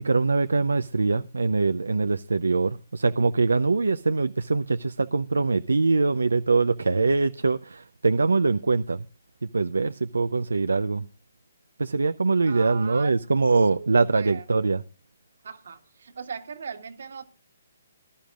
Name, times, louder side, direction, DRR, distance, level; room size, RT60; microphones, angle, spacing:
voice 1, 0.0-9.0 9.4-11.1 11.8-14.8, right 3 dB, 85° right, 0.5 m, -23 dB
voice 2, 12.4-13.1 13.5-14.4 15.4-17.2, right 6 dB, 65° right, 1.7 m, -39 dB
20.0 x 11.5 x 2.4 m
hypercardioid pair, 140°, 0 cm